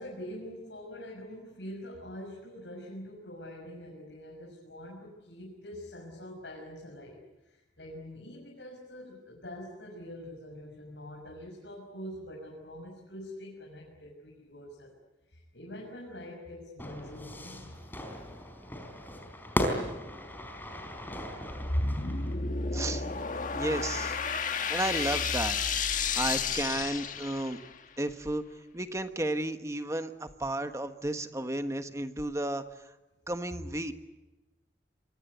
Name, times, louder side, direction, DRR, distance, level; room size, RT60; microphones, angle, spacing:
voice 1, 0.0-14.9 15.3-17.8, equal, 75° left, -1 dB, 6.3 m, -45 dB
Fire / Fireworks, 16.8-22.4, equal, 10° left, 4.1 m, -36 dB
sound 1, 21.5-27.8, left 5 dB, 45° left, 1.8 m, -31 dB
voice 2, 22.7-23.0 23.5-24.2 24.7-25.6 26.1-27.6 28.0-28.4 28.7-32.6 33.3-33.9, right 1 dB, 15° right, 8 dB, 1.4 m, -33 dB
27.0 x 24.0 x 8.2 m, 1.1 s
head